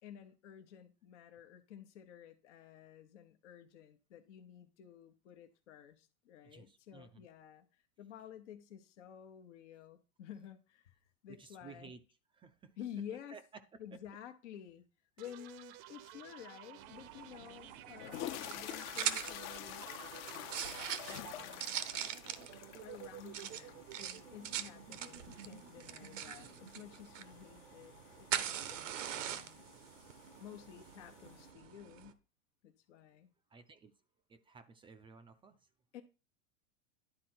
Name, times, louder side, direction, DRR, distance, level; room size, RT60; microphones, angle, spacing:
voice 1, 0.0-11.9 12.8-13.4 13.8-14.8 15.2-19.9 21.1-21.8 22.8-29.7 30.4-32.2 32.6-33.3 35.9-36.0, left 10 dB, 75° left, 0.9 m, -52 dB
voice 2, 6.4-7.3 11.3-12.0 12.3-12.8 13.3-13.4 13.9-14.0 33.5-33.9 34.3-35.7, right 5 dB, 15° right, 0.3 m, -55 dB
sound 1, 15.2-28.8, right 12 dB, 50° right, 0.6 m, -54 dB
sound 2, 16.8-32.1, right 10 dB, 90° right, 0.8 m, -43 dB
sound 3, 17.2-17.3 17.9-31.5, left 13 dB, 45° left, 0.6 m, -49 dB
10.5 x 3.9 x 4.3 m
hypercardioid pair, 115°, 36 cm